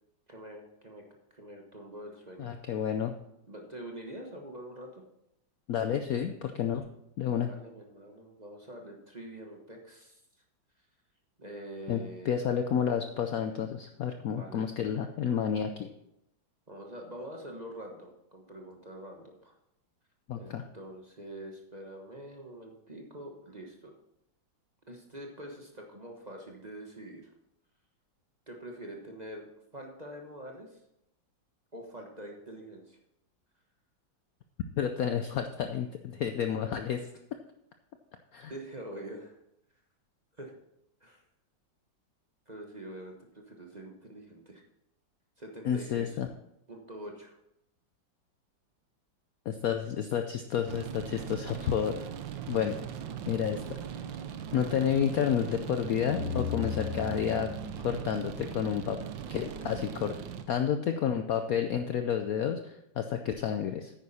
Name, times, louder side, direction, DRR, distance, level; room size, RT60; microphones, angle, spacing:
voice 1, 0.3-1.0 1.3-2.5 3.5-5.0 7.2-10.2 11.4-12.5 14.3-14.7 15.3-15.4 16.7-19.5 20.4-23.9 24.9-27.2 28.5-29.5 29.7-30.8 31.7-33.0 38.5-39.3 40.4-40.5 41.0-41.2 42.5-44.6 45.4-46.2 46.7-47.3, right 1 dB, 25° right, 1 dB, 1.1 m, -45 dB
voice 2, 2.4-3.1 5.7-6.9 7.2-7.5 11.9-15.9 20.3-20.6 34.8-37.1 38.3-38.5 45.6-46.3 49.5-52.0 52.5-52.8 53.3-53.8 54.5-57.5 57.8-59.0 59.3-60.1 60.5-63.9, left 8 dB, 70° left, 7 dB, 0.9 m, -30 dB
sound 1, 50.7-60.4, right 8 dB, 75° right, 1.5 m, -40 dB
sound 2, 56.1-59.0, left 7 dB, 45° left, 2.1 m, -37 dB
9.6 x 9.3 x 4.2 m, 0.82 s
omnidirectional pair, 2.1 m